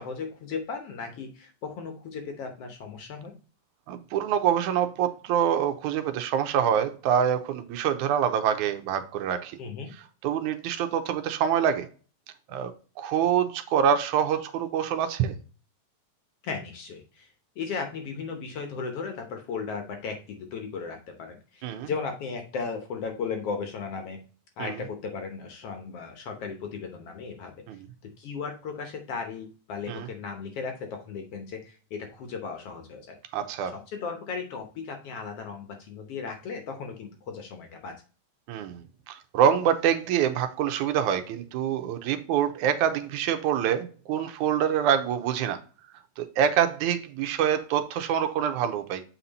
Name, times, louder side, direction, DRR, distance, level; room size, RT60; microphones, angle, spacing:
voice 1, 0.0-3.4 9.6-9.9 16.4-17.3 17.6-24.2 24.6-27.5 28.0-33.2 33.6-38.0, left 5 dB, 65° left, 1.8 m, -36 dB
voice 2, 3.9-9.6 10.2-11.9 12.5-12.7 13.0-15.3 21.6-21.9 24.6-24.8 27.7-27.8 29.9-30.1 33.3-33.8 38.5-45.6 46.2-49.0, right 9 dB, 80° right, 2.2 m, -25 dB
7.6 x 4.3 x 4.0 m
omnidirectional pair, 3.5 m